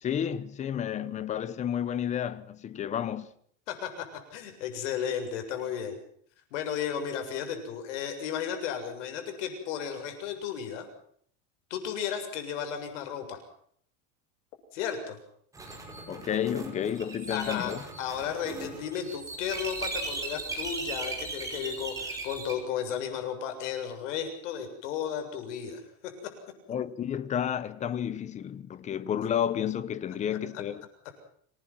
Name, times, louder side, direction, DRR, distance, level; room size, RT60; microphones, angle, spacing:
voice 1, 0.0-3.3 16.1-17.8 26.7-30.9, left 9 dB, 20° left, 0.9 m, -31 dB
voice 2, 3.7-4.1 4.3-6.0 6.5-10.9 11.7-13.4 14.7-15.2 17.3-17.7 18.0-26.3 30.5-30.6, left 8 dB, 85° left, 7.3 m, -34 dB
sound 1, 15.5-22.5, right 3 dB, 10° right, 5.1 m, -38 dB
26.5 x 19.5 x 6.1 m
cardioid pair, 175°, 35 cm